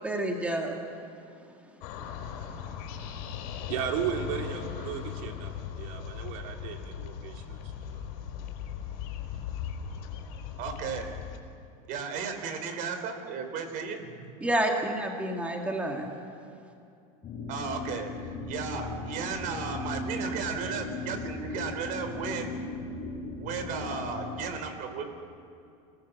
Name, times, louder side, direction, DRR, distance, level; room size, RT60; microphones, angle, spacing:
voice 1, 0.0-0.8 14.4-16.1, right 1 dB, 5° right, 1 dB, 2.4 m, -29 dB
sound 1, 1.8-11.4, left 8 dB, 65° left, 4.4 m, -38 dB
voice 2, 3.7-8.1 8.4-8.5, right 8 dB, 65° right, 3 dB, 2.7 m, -35 dB
voice 3, 10.6-11.1 11.9-14.3 17.5-22.5 23.3-25.1, right 5 dB, 45° right, 7 dB, 4.0 m, -35 dB
sound 2, 17.2-24.5, left 3 dB, 25° left, 4.4 m, -37 dB
29.5 x 19.0 x 7.3 m, 2.6 s
supercardioid pair, 140°, 19 cm